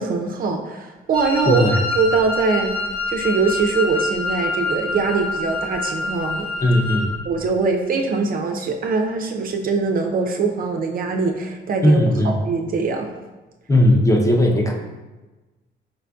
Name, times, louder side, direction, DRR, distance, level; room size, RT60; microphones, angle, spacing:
voice 1, 0.0-1.7 2.0-2.8 3.1-6.5 7.3-12.0 12.2-13.1, right 4 dB, 45° right, 3 dB, 0.4 m, -22 dB
Wind instrument woodwind instrument, 1.1-7.2, left 3 dB, 55° left, 1.3 m, -26 dB
voice 2, 1.4-1.8 6.6-7.1 11.8-12.3 13.7-14.7, left 1 dB, 15° left, 1 dB, 0.5 m, -17 dB
4.9 x 2.4 x 2.3 m, 1.2 s
cardioid pair, 90°, 20 cm